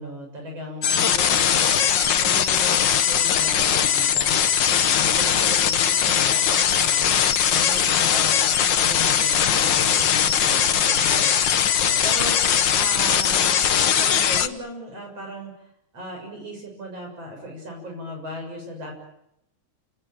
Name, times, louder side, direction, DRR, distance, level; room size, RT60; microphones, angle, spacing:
voice 1, 0.0-7.1 7.5-13.5 13.8-15.5 15.9-18.9, equal, 50° right, 2 dB, 8.0 m, -36 dB
sound 1, 0.8-14.5, left 8 dB, 55° left, 1.3 m, -20 dB
29.5 x 19.5 x 8.9 m, 0.82 s
omnidirectional pair, 3.5 m